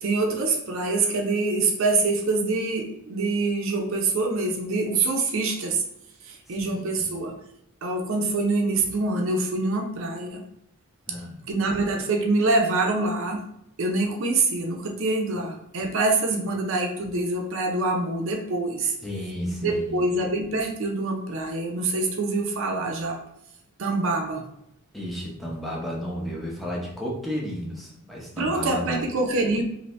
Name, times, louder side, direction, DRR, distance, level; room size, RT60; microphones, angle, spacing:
voice 1, 0.0-5.8 6.2-7.4 7.8-10.4 11.5-13.4 13.8-18.9 19.6-23.2 23.8-24.4 28.4-29.6, right 3 dB, 60° right, 1 dB, 0.5 m, -25 dB
voice 2, 6.5-7.1 11.1-11.4 18.8-20.0 24.9-29.0, equal, ahead, -4 dB, 0.6 m, -33 dB
2.7 x 2.6 x 3.2 m, 0.77 s
head